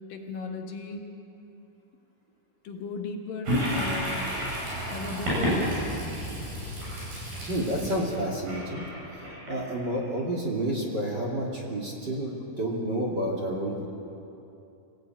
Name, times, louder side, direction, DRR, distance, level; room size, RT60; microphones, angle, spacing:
voice 1, 0.1-1.1 2.6-4.3 4.9-5.7, left 4 dB, 70° left, 2 dB, 3.2 m, -36 dB
Toilet flush, 3.5-10.0, equal, 85° right, 10.0 m, -31 dB
voice 2, 7.5-8.8 9.5-13.9, right 1 dB, 30° right, -2 dB, 2.7 m, -30 dB
25.0 x 15.5 x 9.2 m, 2.8 s
omnidirectional pair, 4.3 m